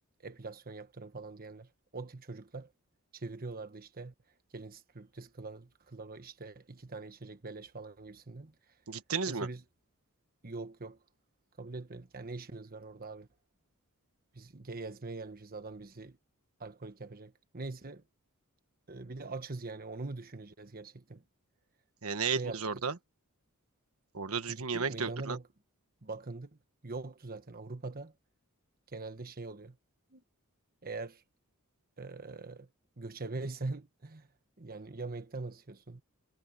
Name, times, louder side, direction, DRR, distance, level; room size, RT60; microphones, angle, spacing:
voice 1, 0.2-2.7 3.1-4.1 4.5-8.7 9.3-9.6 10.4-11.0 11.6-13.3 14.3-16.2 16.6-18.0 18.9-21.2 22.2-22.6 24.5-25.4 26.0-28.1 28.9-29.8 30.1-30.2 30.8-31.2 32.0-32.7 33.0-34.3 34.6-36.0, right 3 dB, 45° right, 1.3 m, -43 dB
voice 2, 8.9-9.5 22.0-23.0 24.1-25.4, right 5 dB, 70° right, 1.4 m, -33 dB
head